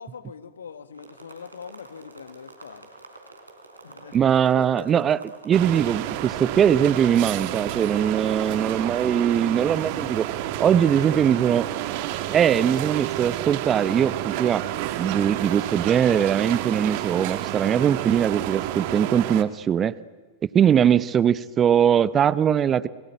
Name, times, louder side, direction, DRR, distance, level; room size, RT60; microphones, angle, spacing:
voice 1, 0.0-2.9 3.8-4.2 4.5-5.1 8.3-8.5 10.9-11.6, left 6 dB, 70° left, 1.6 m, -42 dB
sound 1, 0.9-18.0, right 2 dB, 80° right, 4.0 m, -47 dB
voice 2, 4.1-5.2 5.5-10.3 10.6-11.7 12.3-14.6 15.0-20.0 20.5-22.9, right 8 dB, 25° right, 0.8 m, -21 dB
sound 2, 5.5-19.4, right 14 dB, 45° right, 1.5 m, -30 dB
30.0 x 21.0 x 9.0 m
figure-of-eight pair, 90°, 0 cm